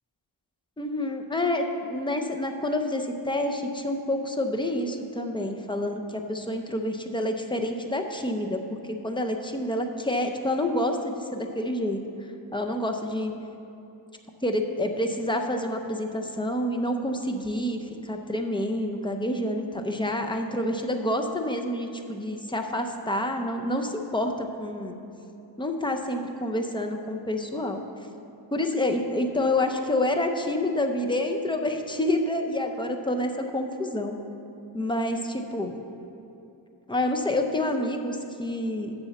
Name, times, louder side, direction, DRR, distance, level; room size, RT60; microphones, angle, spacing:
voice 1, 0.8-12.0 12.5-13.3 14.4-25.0 25.6-27.8 28.5-34.2 34.7-35.7 36.9-38.9, left 1 dB, 10° left, 4 dB, 0.5 m, -28 dB
7.2 x 6.9 x 6.9 m, 2.9 s
wide cardioid pair, 155°, 44 cm